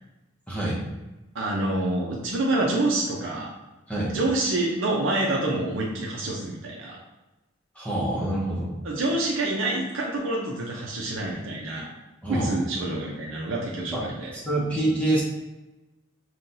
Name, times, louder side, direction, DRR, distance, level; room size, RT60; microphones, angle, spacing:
voice 1, 0.5-0.8 3.9-4.1 7.7-8.7 12.2-12.5 13.9-15.2, right 1 dB, 5° left, -6 dB, 0.8 m, -26 dB
voice 2, 1.3-3.5 4.1-7.0 8.8-11.9 12.3-14.3, right 2 dB, 70° right, -3 dB, 0.6 m, -27 dB
5.7 x 2.3 x 2.6 m, 1.0 s
head